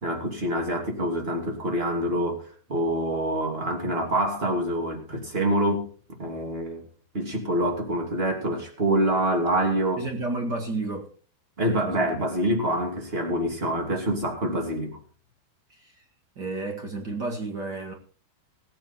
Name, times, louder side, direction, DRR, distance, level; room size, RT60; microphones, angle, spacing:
voice 1, 0.0-5.9 6.2-6.8 7.1-10.1 11.6-15.0, right 1 dB, 20° right, 1.8 m, -26 dB
voice 2, 10.0-11.1 11.7-12.1 15.7-16.0 16.3-17.9, right 3 dB, 80° right, 0.9 m, -32 dB
19.0 x 8.6 x 4.3 m
omnidirectional pair, 5.5 m